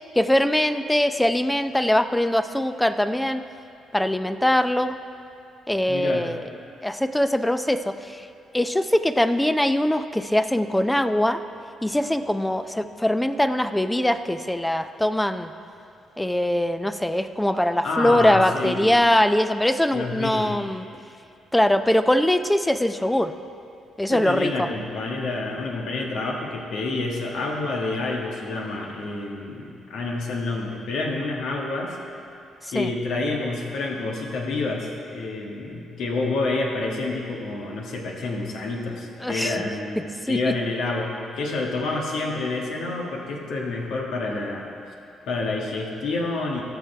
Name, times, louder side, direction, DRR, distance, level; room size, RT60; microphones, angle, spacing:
voice 1, 0.1-3.4 3.9-5.0 5.7-6.4 6.8-8.3 8.5-11.4 11.8-15.5 16.2-20.8 21.5-23.3 24.0-24.7 32.6-32.9 39.2-39.6 40.3-40.5, left 1 dB, 10° left, 10 dB, 0.6 m, -22 dB
voice 2, 5.9-6.3 17.8-18.9 19.9-20.6 24.1-32.0 32.7-44.7 45.2-46.6, left 3 dB, 65° left, -1 dB, 1.6 m, -28 dB
18.0 x 7.4 x 3.4 m, 2.6 s
hypercardioid pair, 45°, 0 cm